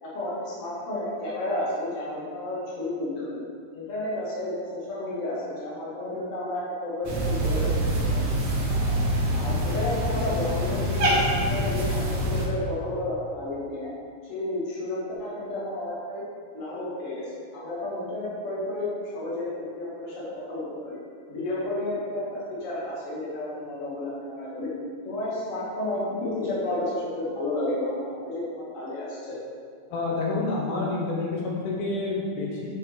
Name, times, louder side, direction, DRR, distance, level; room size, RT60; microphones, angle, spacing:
voice 1, 0.0-3.4 3.7-4.6 4.9-8.3 8.7-9.0 9.3-13.9 14.2-16.2 16.5-18.9 19.1-21.0 21.3-22.2 22.6-24.7 25.0-29.4, left 1 dB, 30° left, -8 dB, 1.4 m, -31 dB
Cat, 7.0-12.5, equal, 70° right, 1.5 m, -25 dB
voice 2, 29.9-32.7, left 3 dB, 75° left, -2 dB, 2.8 m, -28 dB
6.9 x 5.6 x 5.2 m, 2.1 s
omnidirectional pair, 4.8 m